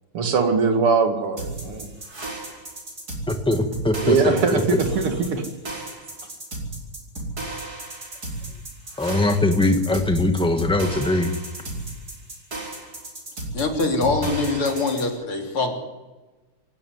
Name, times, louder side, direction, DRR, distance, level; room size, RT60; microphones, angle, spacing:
voice 1, 0.1-1.9 4.0-4.6 4.9-5.4, right 5 dB, 80° right, 5 dB, 3.2 m, -21 dB
sound 1, 1.4-15.1, right 2 dB, 40° right, 5.1 m, -34 dB
voice 2, 3.3-4.6 9.0-11.4, left 1 dB, 5° left, 6 dB, 1.4 m, -21 dB
voice 3, 13.5-15.8, left 3 dB, 75° left, 2 dB, 4.2 m, -23 dB
26.0 x 12.5 x 9.6 m, 1.2 s
omnidirectional pair, 2.4 m